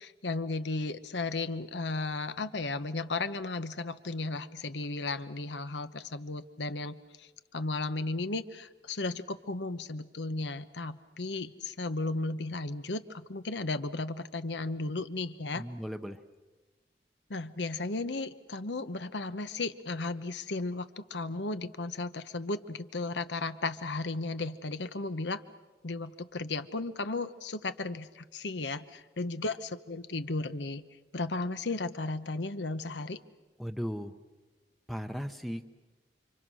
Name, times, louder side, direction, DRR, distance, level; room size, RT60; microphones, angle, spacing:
voice 1, 0.0-15.6 17.3-25.4 25.8-30.8 31.1-33.2, left 3 dB, 85° left, 11 dB, 1.0 m, -35 dB
voice 2, 15.5-16.2 33.6-34.1 34.9-35.6, equal, ahead, 7 dB, 0.8 m, -36 dB
29.5 x 25.5 x 6.3 m, 1.2 s
head